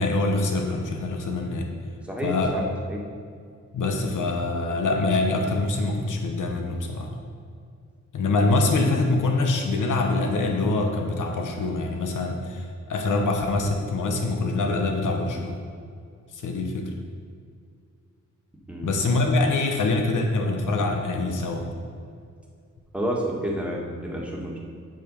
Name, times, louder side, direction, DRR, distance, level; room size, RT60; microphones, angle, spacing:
voice 1, 0.0-1.7 2.2-2.5 3.7-7.1 8.1-15.6 16.3-16.9 18.8-21.7, left 2 dB, 75° left, 3 dB, 1.1 m, -24 dB
voice 2, 2.1-2.6 2.9-3.0 18.7-18.9 22.9-24.6, equal, 5° right, -3 dB, 1.6 m, -29 dB
7.8 x 5.1 x 5.5 m, 2.2 s
cardioid pair, 85°, 31 cm